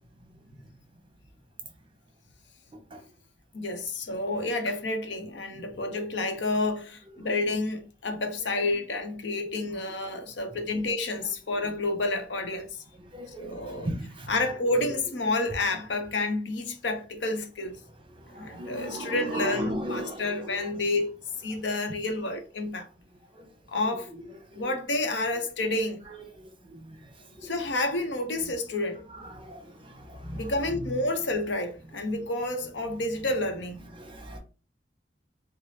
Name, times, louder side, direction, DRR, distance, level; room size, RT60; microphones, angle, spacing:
voice 1, 3.5-12.8 13.4-13.9 14.3-17.8 18.3-21.1 21.4-22.9 23.7-24.1 24.5-26.0 27.4-29.0 30.3-33.8, left 2 dB, 80° left, 0.7 m, -29 dB
voice 2, 13.1-14.3 18.3-20.7 23.4-23.5 24.1-24.7 26.6-27.0 27.4-27.5 29.1-30.8 33.9-34.4, right 1 dB, 30° right, 0.8 m, -37 dB
4.0 x 2.0 x 3.2 m
head